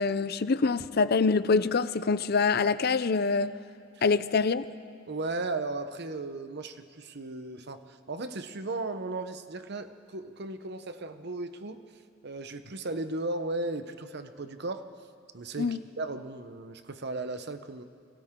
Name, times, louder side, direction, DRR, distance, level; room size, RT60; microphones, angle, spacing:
voice 1, 0.0-3.5 4.0-4.6 15.6-15.8, left 4 dB, 55° left, 14 dB, 0.6 m, -25 dB
voice 2, 5.1-11.8 12.2-14.9 15.3-17.8, right 2 dB, 60° right, 9 dB, 0.9 m, -36 dB
30.0 x 23.5 x 3.8 m, 2.4 s
head